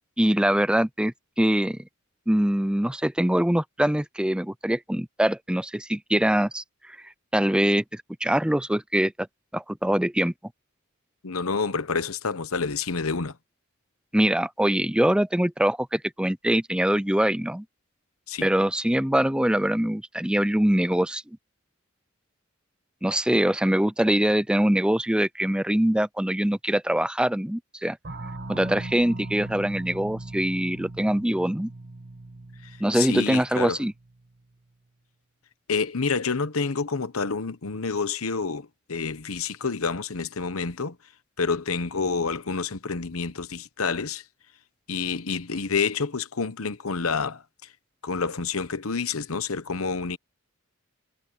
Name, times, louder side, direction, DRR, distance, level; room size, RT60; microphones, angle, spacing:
voice 1, 0.2-1.8 2.3-6.6 7.3-9.3 9.5-10.3 14.1-17.6 18.4-21.2 23.0-28.0 28.5-31.7 32.8-33.9, right 1 dB, 5° right, 0.5 m, -23 dB
voice 2, 11.2-13.4 18.3-18.5 32.6-33.8 35.7-41.0 41.4-44.2 44.9-47.7 48.0-50.2, left 4 dB, 85° left, 1.1 m, -28 dB
sound 1, 28.0-34.4, right 2 dB, 50° right, 1.4 m, -39 dB
head